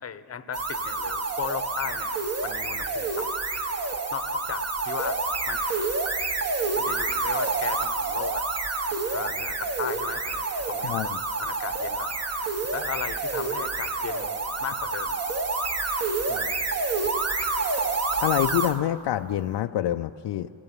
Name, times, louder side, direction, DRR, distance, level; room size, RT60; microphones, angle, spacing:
voice 1, 0.0-2.1 2.4-3.7 4.1-5.9 6.8-8.5 9.1-11.1 11.4-12.1 12.7-15.2 16.3-16.6, left 8 dB, 30° left, 11 dB, 0.9 m, -36 dB
sound 1, 0.5-18.8, right 3 dB, 30° right, 1.4 m, -28 dB
voice 2, 10.8-11.2 18.2-20.5, left 12 dB, 65° left, 6 dB, 0.6 m, -26 dB
30.0 x 17.0 x 9.0 m, 2.5 s
cardioid pair, 140°, 47 cm